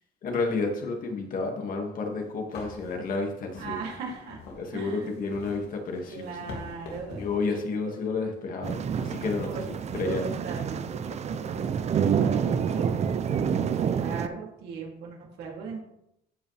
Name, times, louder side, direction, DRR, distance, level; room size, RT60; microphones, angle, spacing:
voice 1, 0.2-3.8 4.6-6.4 7.2-10.3, left 3 dB, 55° left, 2 dB, 2.0 m, -31 dB
sound 1, 1.9-2.0 2.5-7.5, left 3 dB, 85° left, 2.5 m, -44 dB
voice 2, 3.6-4.4 4.7-5.1 6.1-7.9 9.5-11.0 11.2-15.8, right 5 dB, 75° right, -2 dB, 2.8 m, -39 dB
sound 2, 8.6-14.3, right 7 dB, 40° right, 0.6 m, -28 dB
14.0 x 5.3 x 3.4 m, 0.78 s
cardioid pair, 110°, 17 cm